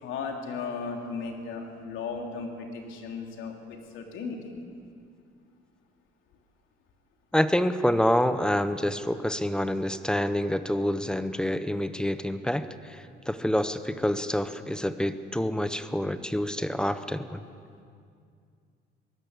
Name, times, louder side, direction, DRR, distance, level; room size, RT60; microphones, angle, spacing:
voice 1, 0.0-4.5, left 5 dB, 90° left, 2 dB, 3.2 m, -36 dB
voice 2, 7.3-17.4, equal, 5° left, 11 dB, 0.7 m, -27 dB
23.0 x 17.5 x 8.2 m, 2.3 s
cardioid pair, 160°, 20 cm